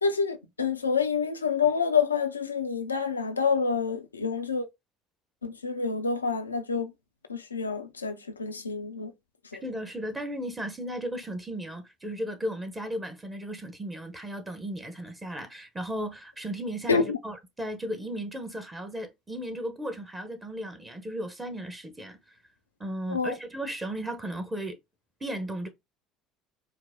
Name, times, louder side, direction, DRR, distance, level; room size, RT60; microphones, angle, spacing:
voice 1, 0.0-4.7 5.4-6.9 7.3-9.1 9.5-9.6 16.9-17.2 23.1-23.3, left 5 dB, 85° left, 0.5 m, -27 dB
voice 2, 9.6-22.3 22.8-24.8 25.2-25.7, equal, 20° right, 1.0 m, -35 dB
4.8 x 2.0 x 3.6 m
figure-of-eight pair, 65°, 0 cm